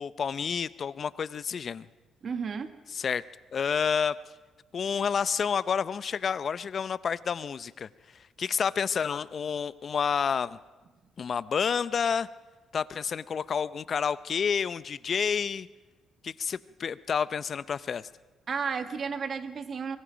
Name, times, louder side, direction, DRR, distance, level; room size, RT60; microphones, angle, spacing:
voice 1, 0.0-1.9 2.9-3.2 3.5-4.2 4.7-7.9 8.4-10.6 11.2-12.3 12.7-15.7 16.2-18.1, left 6 dB, 50° left, 17 dB, 0.6 m, -29 dB
voice 2, 2.2-2.7 18.5-20.0, right 6 dB, 50° right, 10 dB, 1.5 m, -32 dB
24.5 x 21.0 x 5.1 m, 1.3 s
cardioid pair, 90°, 0 cm